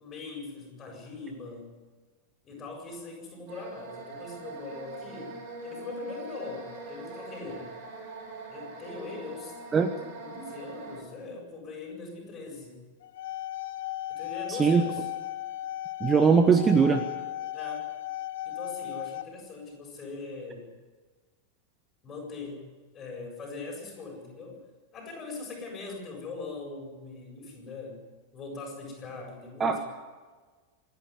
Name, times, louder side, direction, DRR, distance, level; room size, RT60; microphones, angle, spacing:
voice 1, 0.0-1.8 2.4-7.7 8.5-9.6 10.2-12.8 14.1-15.1 17.5-17.9 18.4-20.7 22.0-24.7 24.9-28.1 28.3-29.8, left 3 dB, 25° left, 0 dB, 7.6 m, -41 dB
sound 1, 3.5-11.0, right 2 dB, 45° right, 5.7 m, -42 dB
sound 2, 13.0-19.2, left 14 dB, 55° left, 1.0 m, -36 dB
voice 2, 14.5-14.8 16.0-17.0 29.6-29.8, right 5 dB, 20° right, 8 dB, 1.2 m, -21 dB
26.0 x 11.0 x 9.7 m, 1.4 s
figure-of-eight pair, 90°, 0 cm